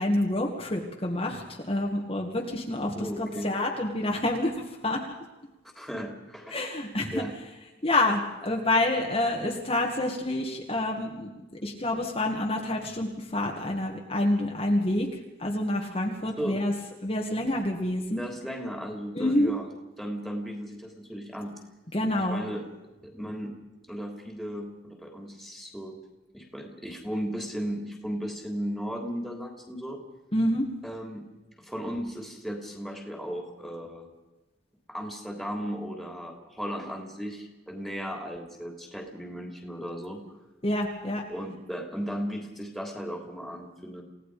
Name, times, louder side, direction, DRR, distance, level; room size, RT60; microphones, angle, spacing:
voice 1, 0.0-5.0 6.5-7.2 7.8-16.7 17.0-18.2 19.1-19.5 21.9-22.4 30.3-30.6 40.6-41.2, left 1 dB, 30° left, 0 dB, 2.1 m, -28 dB
voice 2, 3.0-3.5 5.7-6.6 7.1-7.3 16.4-16.6 18.1-19.7 20.0-21.6 22.2-22.6 23.0-23.5 23.9-26.0 26.3-30.0 30.8-31.3 31.6-34.1 34.9-40.2 41.3-44.0, equal, ahead, 1 dB, 3.5 m, -36 dB
29.0 x 17.5 x 5.1 m, 1.1 s
head